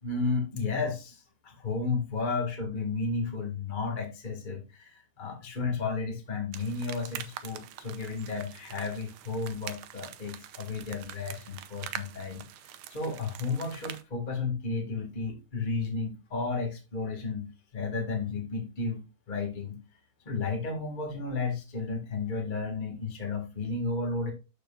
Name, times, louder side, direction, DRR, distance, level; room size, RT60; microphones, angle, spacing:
voice 1, 0.0-12.4 12.9-19.8 20.2-24.3, left 4 dB, 20° left, 1.4 m, -33 dB
sound 1, 6.5-14.0, right 11 dB, 75° right, 1.8 m, -44 dB
12.5 x 4.7 x 2.5 m
omnidirectional pair, 3.7 m